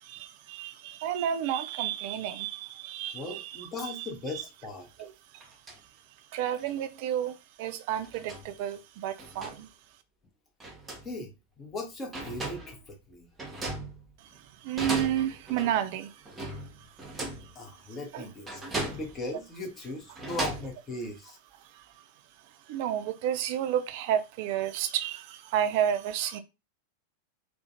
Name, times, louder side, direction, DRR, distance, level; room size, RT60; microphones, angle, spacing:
voice 1, 0.0-4.4 5.0-5.4 6.3-9.7 14.2-14.3 14.6-16.2 18.1-18.2 21.7-21.8 22.7-26.4, right 10 dB, 50° right, 0.3 m, -31 dB
voice 2, 3.1-4.9 11.0-11.3 11.6-13.3 17.5-18.6 18.9-21.4, left 2 dB, 25° left, 0.7 m, -38 dB
sound 1, 4.8-4.9 5.3-5.8 6.6-6.7 7.9-8.5 9.2-9.6 10.6-11.1 11.8-11.9 12.1-12.8 13.4-14.3 14.8-15.8 16.2-17.5 18.5-19.3 20.0-20.7, right 2 dB, 15° right, 0.7 m, -37 dB
2.4 x 2.1 x 2.6 m
figure-of-eight pair, 90°, 0 cm